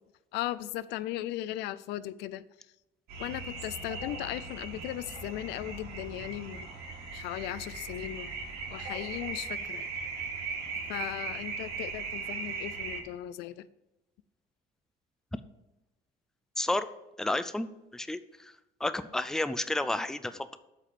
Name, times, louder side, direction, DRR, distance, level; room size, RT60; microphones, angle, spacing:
voice 1, 0.3-2.4 3.2-6.7 7.1-8.3 8.7-9.9 10.9-13.7, left 14 dB, 90° left, 17 dB, 0.4 m, -37 dB
sound 1, 3.1-13.0, right 4 dB, 70° right, 2.2 m, -38 dB
voice 2, 16.6-16.9 17.2-18.5 18.8-20.6, left 2 dB, 5° left, 13 dB, 0.4 m, -31 dB
7.5 x 4.3 x 6.8 m, 0.99 s
cardioid pair, 110°, 17 cm